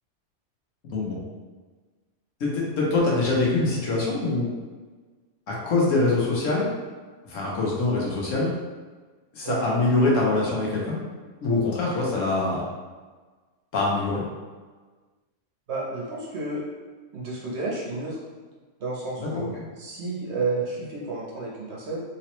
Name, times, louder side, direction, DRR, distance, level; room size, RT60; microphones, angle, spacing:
voice 1, 2.4-4.5 5.5-6.7 7.3-8.5 9.3-11.0 11.4-12.6 13.7-14.2 19.2-19.5, left 2 dB, 70° left, -4 dB, 1.3 m, -24 dB
voice 2, 15.7-16.6 17.1-18.2 18.8-19.5 19.8-22.0, right 3 dB, 60° right, -4 dB, 1.0 m, -31 dB
3.5 x 3.1 x 3.0 m, 1.4 s
omnidirectional pair, 1.4 m